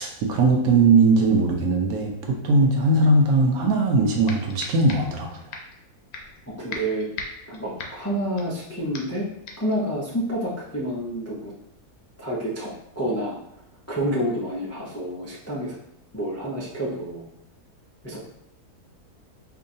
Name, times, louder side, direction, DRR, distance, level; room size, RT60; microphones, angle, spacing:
voice 1, 0.0-5.4, right 3 dB, 70° right, 2 dB, 1.1 m, -20 dB
sound 1, 3.7-3.8 4.3-5.2 5.5-5.8 6.1-6.4 6.7-8.6 8.9-9.2 9.5-9.8, left 4 dB, 70° left, 1.0 m, -38 dB
voice 2, 6.5-7.1 7.5-9.3 9.6-11.5 12.2-13.4 13.9-15.7 16.1-17.3 18.0-18.2, right 1 dB, 20° left, -6 dB, 0.3 m, -28 dB
4.6 x 2.7 x 2.6 m, 0.81 s
omnidirectional pair, 1.7 m